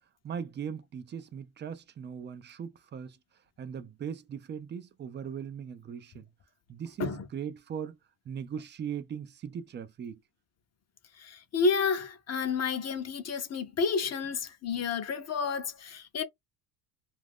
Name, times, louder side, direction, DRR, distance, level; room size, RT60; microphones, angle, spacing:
voice 1, 0.2-3.2 3.6-6.3 6.7-8.0 8.3-10.2, right 7 dB, 25° right, 0.3 m, -39 dB
voice 2, 11.2-16.2, left 5 dB, 30° left, 0.7 m, -30 dB
2.5 x 2.2 x 3.4 m
supercardioid pair, 90°, 49 cm